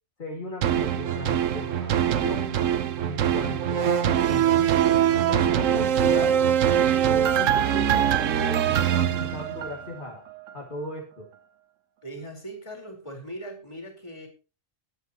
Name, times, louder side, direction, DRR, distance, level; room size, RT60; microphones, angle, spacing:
voice 1, 0.2-2.6 3.0-6.6 7.0-8.7 8.9-10.2 10.5-11.3, left 2 dB, 40° left, 0 dB, 2.5 m, -37 dB
sound 1, 0.6-10.0 10.5-10.6, right 9 dB, 85° right, 1.2 m, -23 dB
voice 2, 12.0-14.3, right 1 dB, 25° left, 1 dB, 4.4 m, -39 dB
20.0 x 9.4 x 2.9 m, 0.33 s
omnidirectional pair, 1.3 m